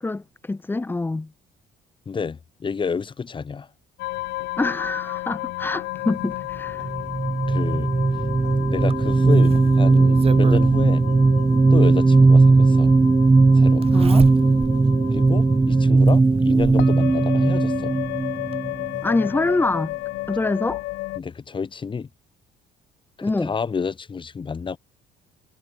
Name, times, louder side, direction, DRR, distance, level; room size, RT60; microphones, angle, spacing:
voice 1, 0.0-1.3 4.6-6.9 13.9-14.3 19.0-20.0 20.3-20.8 23.2-23.5, left 2 dB, 10° left, 0.8 m, -25 dB
voice 2, 2.1-3.7 7.5-7.9 8.7-11.1 11.7-12.9 13.5-13.9 15.1-17.9 21.2-22.1 23.2-24.8, left 5 dB, 30° left, 2.7 m, -29 dB
sound 1, 4.0-21.2, left 19 dB, 85° left, 1.3 m, -33 dB
sound 2, 6.8-19.3, right 3 dB, 10° right, 0.4 m, -17 dB
Zipper (clothing), 8.9-10.7 12.1-12.2 13.8-14.8 15.3-15.4 16.1-16.9 18.1-18.2 18.5-18.6, right 6 dB, 35° right, 2.1 m, -32 dB
cardioid pair, 110°, 17 cm